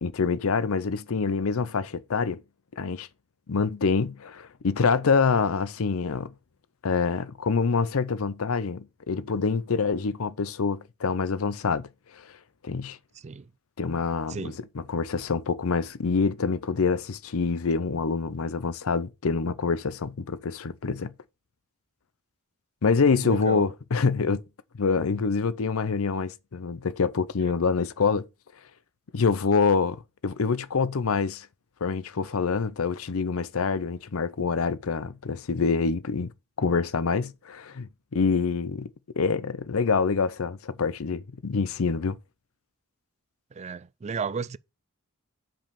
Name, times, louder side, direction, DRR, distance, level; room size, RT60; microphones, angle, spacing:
voice 1, 0.0-2.4 2.8-3.1 3.5-6.3 6.8-11.9 12.1-12.2 12.6-13.0 13.8-21.1 22.8-24.4 24.8-28.3 29.1-31.5 31.8-36.3 36.6-38.9 39.2-42.2, left 5 dB, 70° left, 0.6 m, -26 dB
voice 2, 23.2-23.7 43.6-44.6, right 5 dB, 30° right, 0.4 m, -33 dB
5.7 x 5.3 x 6.8 m
head